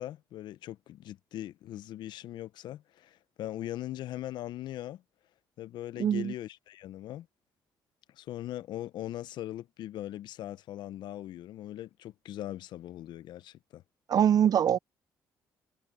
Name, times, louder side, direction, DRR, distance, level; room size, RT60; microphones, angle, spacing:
voice 1, 0.0-5.0 5.6-7.3 8.1-13.8, left 13 dB, 70° left, 0.8 m, -40 dB
voice 2, 6.0-6.3 14.1-14.8, right 9 dB, 55° right, 0.5 m, -23 dB
supercardioid pair, 60°, 8 cm